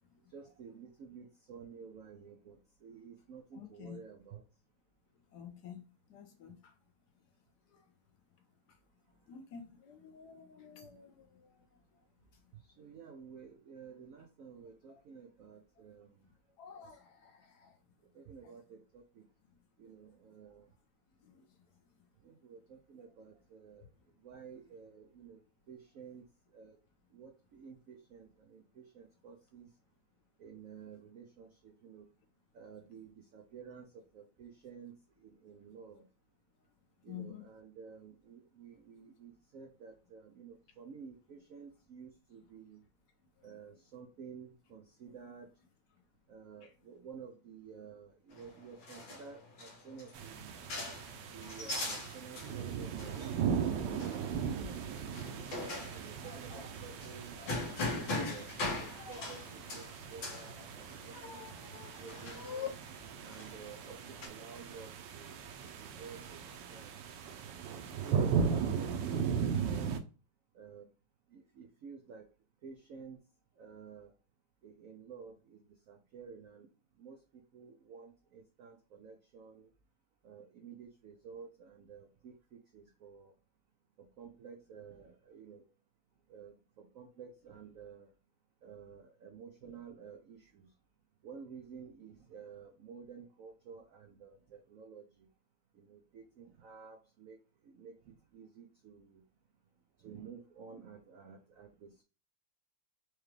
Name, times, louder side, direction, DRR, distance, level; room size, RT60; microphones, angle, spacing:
voice 1, 0.2-4.5 9.0-9.4 10.6-10.9 12.5-16.4 16.8-16.9 18.0-19.3 19.8-20.7 22.1-26.8 27.1-29.8 30.4-32.1 32.5-36.1 37.0-42.8 43.4-45.6 46.3-50.6 51.3-55.2 55.9-57.6 57.9-62.5 63.2-67.0 67.6-70.0 70.5-70.9 71.3-72.3 72.6-74.2 74.6-79.7 80.2-83.3 84.0-85.7 86.3-88.1 88.6-90.7 91.2-95.3 95.7-99.2 100.0-102.0, right 6 dB, 90° right, 0.7 m, -52 dB
voice 2, 3.5-4.0 5.3-5.8 6.1-6.7 7.7-7.8 9.3-11.6 14.9-15.0 16.6-17.7 21.2-21.4 37.1-37.5 43.7-43.8 46.6-46.7 51.6-51.9 56.2-56.7 57.3-57.5 58.0-58.1 59.0-59.6 61.1-62.7, left 8 dB, 70° left, 1.1 m, -49 dB
sound 1, 48.3-64.3, left 2 dB, 85° left, 1.9 m, -42 dB
sound 2, 50.1-70.0, right 6 dB, 75° right, 1.2 m, -38 dB
4.8 x 2.3 x 3.1 m
omnidirectional pair, 2.1 m